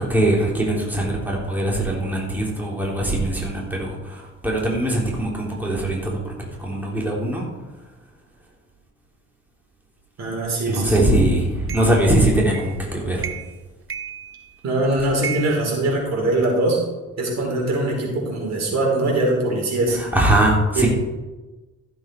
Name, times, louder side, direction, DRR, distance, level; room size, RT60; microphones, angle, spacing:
voice 1, 0.0-6.3 6.6-7.4 10.7-13.2 19.9-20.9, right 1 dB, 5° right, -3 dB, 3.4 m, -21 dB
voice 2, 10.2-11.1 14.6-16.8 17.2-20.0 20.7-20.9, right 2 dB, 60° right, -2 dB, 4.6 m, -22 dB
sound 1, 11.0-11.1 11.7-12.0 12.5-12.8 13.2-13.6 13.9-14.7 15.2-16.5, right 8 dB, 45° right, 0.9 m, -34 dB
14.5 x 7.9 x 4.5 m, 1.1 s
cardioid pair, 90°, 30 cm